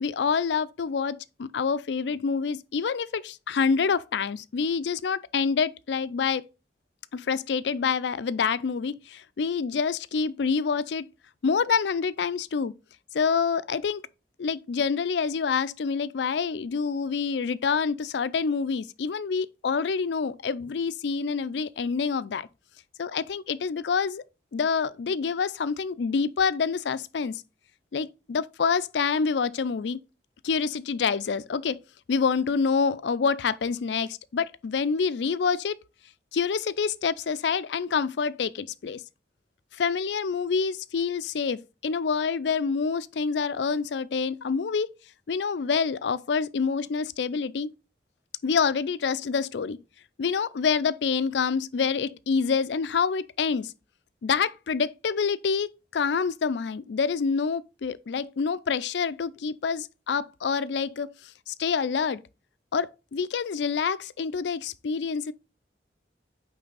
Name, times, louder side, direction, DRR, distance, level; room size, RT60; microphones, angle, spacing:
voice 1, 0.0-6.4 7.1-11.0 11.4-12.7 13.1-14.0 14.4-22.5 23.0-24.2 24.5-27.4 27.9-30.0 30.4-31.8 32.1-35.7 36.3-39.0 39.8-44.9 45.3-47.7 48.4-49.8 50.2-53.7 54.2-61.1 61.5-62.2 62.7-65.3, left 5 dB, 80° left, 0.4 m, -27 dB
8.6 x 3.3 x 3.9 m
head